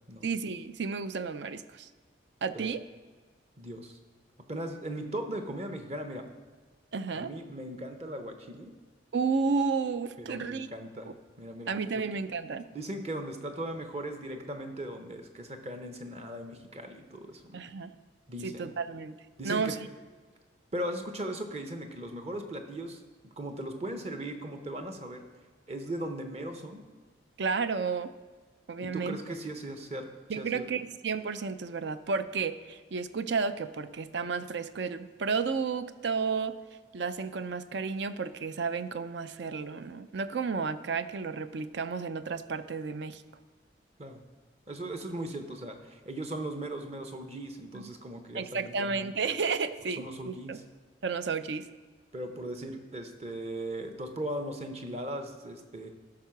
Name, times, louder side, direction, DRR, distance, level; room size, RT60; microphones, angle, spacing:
voice 1, 0.2-1.9 2.4-2.8 6.9-7.3 9.1-10.7 11.0-11.1 11.7-12.6 17.5-17.9 18.4-19.1 19.4-19.9 27.4-28.1 28.7-29.2 30.3-36.5 36.9-43.2 47.7-47.9 48.3-50.6 51.0-51.6, right 5 dB, 65° right, 12 dB, 0.5 m, -32 dB
voice 2, 3.6-4.0 4.5-6.2 7.1-8.7 10.2-11.1 11.4-12.0 12.7-17.6 18.3-18.6 19.4-19.8 20.7-25.2 25.7-26.8 28.8-30.1 30.4-30.7 44.0-44.2 44.7-49.0 50.0-50.6 52.1-55.9, right 1 dB, 35° right, 6 dB, 0.8 m, -38 dB
12.5 x 4.7 x 5.8 m, 1.4 s
head